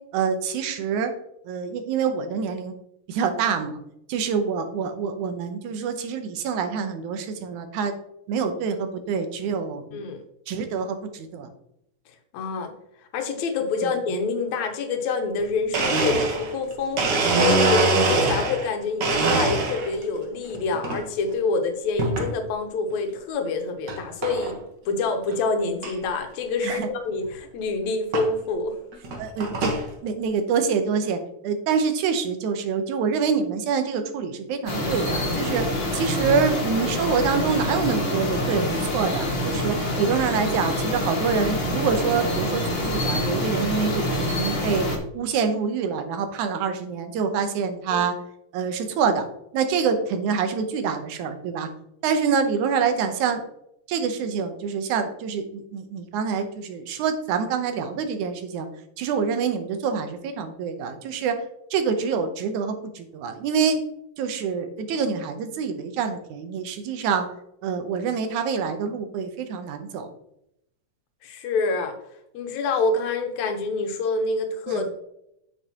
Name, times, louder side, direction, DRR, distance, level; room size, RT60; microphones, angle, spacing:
voice 1, 0.1-1.1 1.5-2.7 3.1-3.8 4.1-7.9 8.3-9.8 10.5-11.5 26.6-26.9 29.2-29.7 30.0-35.6 35.9-44.9 45.1-48.2 48.5-49.3 49.5-51.7 52.0-53.4 53.9-58.7 59.0-61.4 61.7-63.8 64.2-67.3 67.6-70.1 74.7-74.9, right 6 dB, 85° right, 7 dB, 2.3 m, -26 dB
voice 2, 9.9-10.2 12.3-12.7 13.1-24.6 24.9-28.8 47.9-48.1 71.2-72.0 72.3-74.9, left 3 dB, 75° left, 5 dB, 2.2 m, -26 dB
Domestic sounds home sounds, 15.4-15.5 15.7-18.7 19.0-20.0 20.5-21.0 22.0-22.3 22.9-23.0 23.9-24.0 24.2-24.6 25.0-25.1 25.3-25.4 25.8-25.9 27.2-27.3 28.1-28.3 28.9-29.9, right 3 dB, 50° right, 1.4 m, -23 dB
sound 1, 34.7-45.0, left 1 dB, 45° left, 0.8 m, -26 dB
8.4 x 6.7 x 2.9 m, 0.78 s
omnidirectional pair, 3.4 m